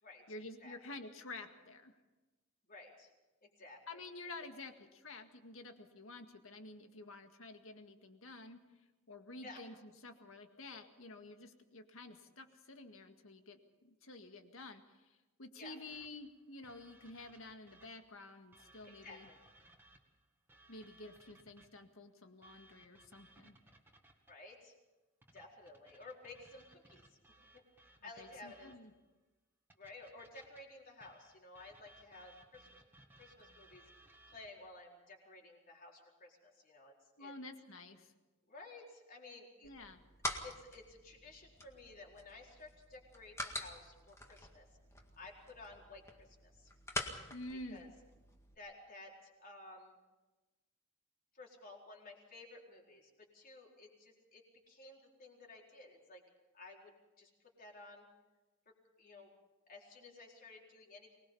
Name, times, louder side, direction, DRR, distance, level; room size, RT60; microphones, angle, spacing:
voice 1, 0.3-2.0 3.9-8.6 9.1-19.3 20.7-23.6 28.2-28.9 37.2-38.1 39.6-40.0 47.3-47.9, left 2 dB, 80° left, 6 dB, 1.9 m, -50 dB
voice 2, 2.7-3.1 3.4-4.0 9.4-9.6 15.6-15.7 18.8-19.4 24.3-24.7 25.3-27.2 27.5-28.7 29.7-32.8 33.2-36.9 37.2-37.3 38.5-39.7 40.4-44.7 45.2-46.7 47.7-47.9 48.6-50.0 51.3-56.2 56.5-57.3 57.6-58.1 58.7-59.3 59.7-61.2, left 2 dB, 45° left, -1 dB, 4.5 m, -54 dB
sound 1, 15.9-18.1 18.5-21.9 22.4-24.5 25.2-29.0 29.7-34.6, right 1 dB, 10° right, 2.0 m, -64 dB
sound 2, 39.6-48.5, left 1 dB, 15° left, 1.9 m, -46 dB
24.5 x 20.5 x 5.6 m, 1.1 s
head